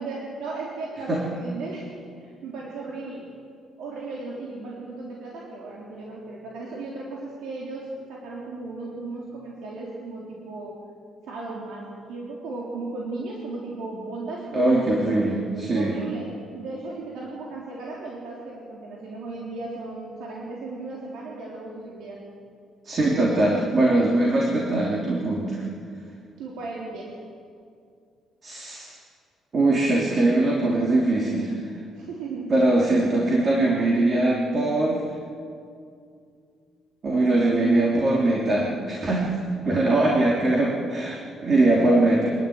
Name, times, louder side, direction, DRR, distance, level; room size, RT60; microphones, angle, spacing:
voice 1, 0.0-1.9 2.2-3.3 3.8-10.8 11.3-15.0 15.7-22.2 26.4-27.1 31.9-32.5, right 3 dB, 90° right, -4 dB, 3.7 m, -36 dB
voice 2, 14.5-15.9 22.8-25.6 28.4-28.9 29.5-31.5 32.5-35.0 37.0-42.3, right 2 dB, 30° right, -3 dB, 3.1 m, -21 dB
25.0 x 12.0 x 9.5 m, 2.3 s
cardioid pair, 160°, 0 cm